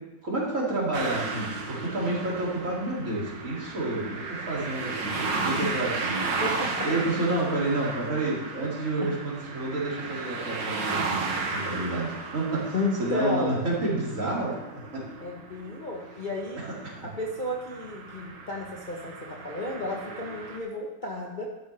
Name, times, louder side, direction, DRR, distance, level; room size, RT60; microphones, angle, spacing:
voice 1, 0.2-6.3 6.8-14.6 14.9-15.0 16.6-17.0, right 2 dB, 45° right, -5 dB, 3.1 m, -29 dB
sound 1, 0.9-20.6, right 4 dB, 80° right, 1.8 m, -35 dB
voice 2, 6.4-7.0 9.0-9.1 12.7-13.6 15.2-16.6 17.0-21.5, left 2 dB, 30° left, -3 dB, 1.1 m, -32 dB
12.0 x 10.5 x 3.4 m, 1.1 s
omnidirectional pair, 2.0 m